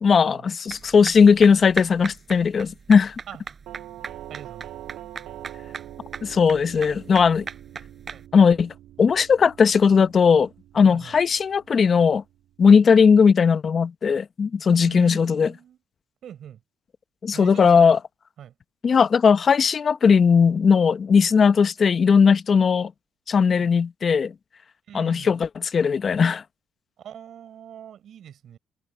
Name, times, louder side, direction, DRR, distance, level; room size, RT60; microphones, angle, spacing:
voice 1, 0.0-3.1 6.2-7.4 8.3-8.7 9.0-10.5 10.7-12.2 12.6-15.5 17.2-18.0 18.8-22.9 23.3-24.3 24.9-26.4, left 6 dB, 45° left, 1.0 m, -18 dB
sound 1, 0.7-8.2, right 6 dB, 40° right, 5.2 m, -37 dB
Doorbell, 3.7-12.5, right 13 dB, 80° right, 2.7 m, -44 dB
voice 2, 4.3-4.7 8.1-8.2 10.8-11.2 12.6-12.8 14.8-15.8 16.2-16.6 17.3-18.0 18.4-18.5 23.5-23.7 24.9-25.4 27.0-28.6, right 10 dB, 65° right, 6.9 m, -42 dB
cardioid pair, 80°, 0 cm